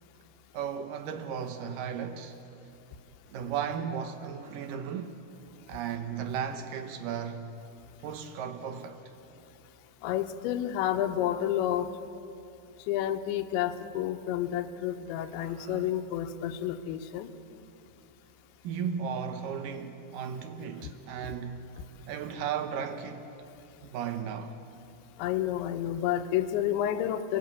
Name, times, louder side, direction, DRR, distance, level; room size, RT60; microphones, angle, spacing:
voice 1, 0.5-2.4 3.3-5.3 5.7-7.6 8.0-9.0 15.4-15.9 18.6-21.6 22.1-23.5 23.8-24.6, right 7 dB, 75° right, 2.0 m, -35 dB
voice 2, 10.0-11.9 12.9-17.3 21.2-21.4 25.2-27.4, left 11 dB, 85° left, 3.2 m, -30 dB
29.0 x 19.5 x 8.5 m
omnidirectional pair, 5.3 m